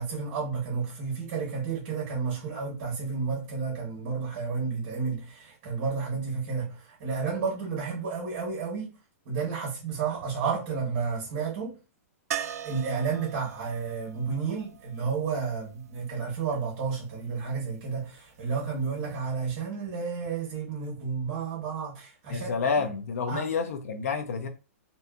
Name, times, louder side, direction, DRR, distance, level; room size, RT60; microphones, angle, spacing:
voice 1, 0.0-8.9 9.2-11.7 12.6-22.5 22.8-22.9 23.3-23.4, right 5 dB, 35° right, 1.0 m, -31 dB
sound 1, 12.3-16.2 18.8-18.9 19.2-19.3, right 9 dB, 75° right, 0.4 m, -39 dB
voice 2, 22.3-24.5, left 5 dB, 70° left, 0.5 m, -29 dB
2.6 x 2.6 x 2.3 m
hypercardioid pair, 160°, 8 cm